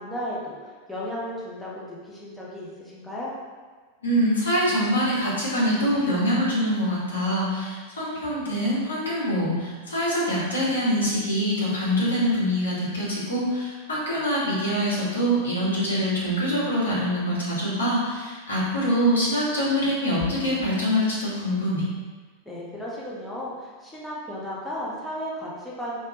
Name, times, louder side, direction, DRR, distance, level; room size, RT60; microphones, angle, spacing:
voice 1, 0.0-3.3 22.5-26.0, equal, 5° left, -7 dB, 0.9 m, -34 dB
voice 2, 4.0-21.8, equal, 75° left, -7 dB, 1.4 m, -24 dB
4.5 x 3.2 x 3.0 m, 1.4 s
figure-of-eight pair, 90°, 0 cm